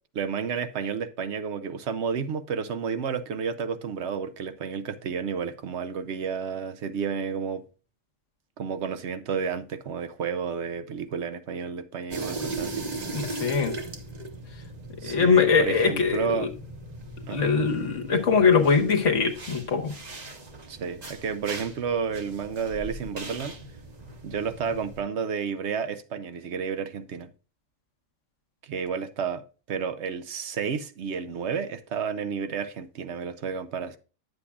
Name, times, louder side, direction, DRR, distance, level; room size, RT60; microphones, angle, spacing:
voice 1, 0.1-7.6 8.6-12.8 15.0-16.5 17.3-17.4 20.7-23.5 24.2-27.3 28.6-29.4 29.7-34.0, right 6 dB, 65° right, 0.9 m, -31 dB
sound 1, 12.1-25.0, right 2 dB, 35° right, 1.2 m, -39 dB
voice 2, 13.1-13.7 15.0-16.5 17.3-19.9, left 5 dB, 70° left, 1.6 m, -22 dB
9.8 x 7.7 x 2.4 m
omnidirectional pair, 1.3 m